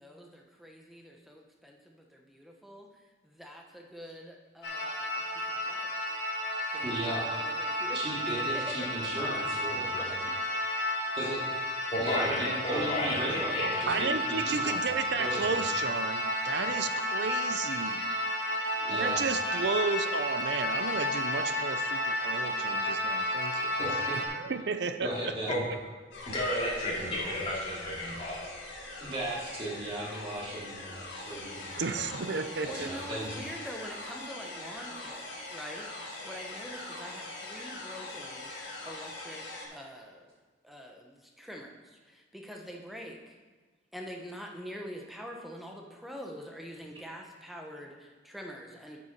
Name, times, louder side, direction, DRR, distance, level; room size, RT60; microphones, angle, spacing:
voice 1, 0.0-6.0 6.3-8.0 8.3-8.6 9.0-9.3 9.8-10.3 32.6-40.3 40.6-43.4 43.9-49.0, equal, ahead, 1 dB, 0.9 m, -45 dB
sound 1, 4.6-24.3, left 1 dB, 60° left, 2.5 m, -32 dB
voice 2, 6.8-7.3 7.9-10.2 11.2-11.4 12.0-15.6 16.7-16.8 18.8-19.3 23.8-24.2 25.0-25.6 29.0-32.0 32.6-33.4, right 1 dB, 30° right, -5 dB, 2.4 m, -37 dB
voice 3, 11.9-13.2 13.5-14.1 25.5-25.6 26.3-28.4, left 1 dB, 30° left, -6 dB, 2.8 m, -32 dB
voice 4, 13.9-18.0 18.9-23.8 24.3-25.1 25.5-25.6 31.7-32.9, right 5 dB, 65° right, 10 dB, 0.5 m, -33 dB
sound 2, 26.1-39.6, left 2 dB, 75° left, 1.9 m, -42 dB
8.8 x 6.9 x 5.2 m, 1.4 s
head